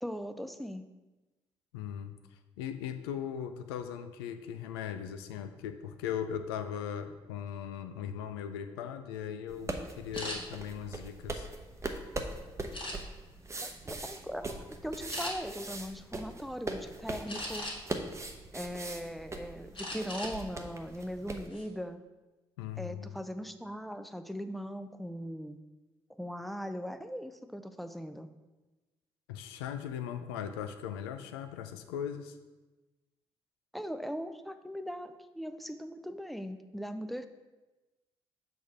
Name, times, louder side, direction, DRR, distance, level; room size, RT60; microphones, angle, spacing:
voice 1, 0.0-0.8 13.6-17.7 18.5-22.0 22.8-25.6 26.2-28.3 33.7-37.3, equal, ahead, 9 dB, 0.5 m, -39 dB
voice 2, 1.7-11.5 22.6-23.2 29.3-32.4, left 8 dB, 80° left, 8 dB, 0.5 m, -39 dB
sound 1, 9.5-21.5, right 2 dB, 20° right, 0.8 m, -41 dB
sound 2, 10.1-10.4 11.0-12.0 12.7-13.3 13.8-14.1 14.4-14.6 15.1-15.3 17.3-18.0 18.5-19.2 19.7-20.4 20.7-20.9 21.3-21.7, left 1 dB, 40° left, 1.7 m, -40 dB
6.3 x 3.5 x 5.9 m, 1.1 s
hypercardioid pair, 45°, 13 cm